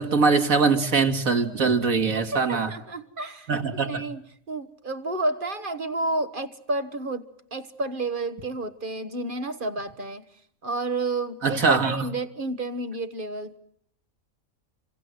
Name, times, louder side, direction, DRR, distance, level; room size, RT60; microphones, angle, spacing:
voice 1, 0.0-2.7 3.5-4.0 11.4-12.0, right 4 dB, 85° right, 2.5 m, -22 dB
voice 2, 2.1-10.2 10.6-13.6, right 2 dB, 40° right, 1.5 m, -31 dB
27.0 x 25.5 x 7.9 m
omnidirectional pair, 1.4 m